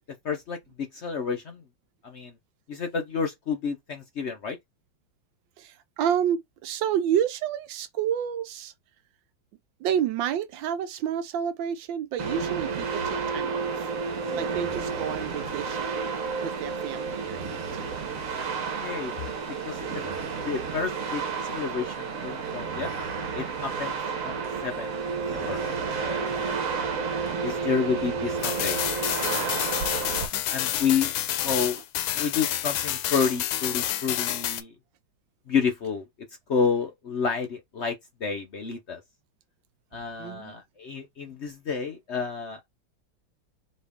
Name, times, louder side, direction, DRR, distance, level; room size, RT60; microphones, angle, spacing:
voice 1, 0.2-1.6 2.0-2.3 2.7-4.6 18.8-19.3 19.6-20.0 20.4-21.2 21.5-22.9 23.3-25.6 26.0-26.7 27.3-28.8 29.1-29.6 30.5-31.1 31.4-31.8 32.1-34.7 35.5-36.1 36.5-39.0 39.9-42.7, left 6 dB, 65° left, 0.6 m, -30 dB
voice 2, 5.6-8.7 9.8-13.9 14.3-16.1 16.4-17.9 27.1-27.3 30.3-30.4 40.2-40.6, right 9 dB, 75° right, 1.3 m, -30 dB
sound 1, 12.2-30.3, right 5 dB, 50° right, 1.2 m, -31 dB
sound 2, 28.4-34.6, left 12 dB, 85° left, 1.4 m, -29 dB
4.2 x 3.1 x 3.5 m
omnidirectional pair, 2.2 m